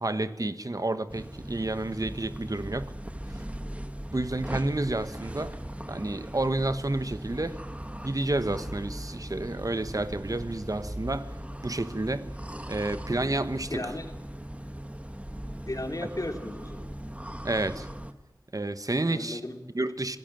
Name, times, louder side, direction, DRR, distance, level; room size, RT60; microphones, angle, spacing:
voice 1, 0.0-2.9 4.1-5.6 5.9-7.6 8.0-11.3 11.6-12.3 12.7-13.9 17.4-17.9 18.5-19.4 19.7-20.2, right 2 dB, 55° right, 1.2 m, -30 dB
sound 1, 1.1-18.1, right 1 dB, 15° right, 1.5 m, -39 dB
voice 2, 13.7-14.1 15.7-16.9 19.0-19.6, left 1 dB, 55° left, 3.2 m, -35 dB
27.0 x 16.5 x 9.1 m
wide cardioid pair, 45°, 7 cm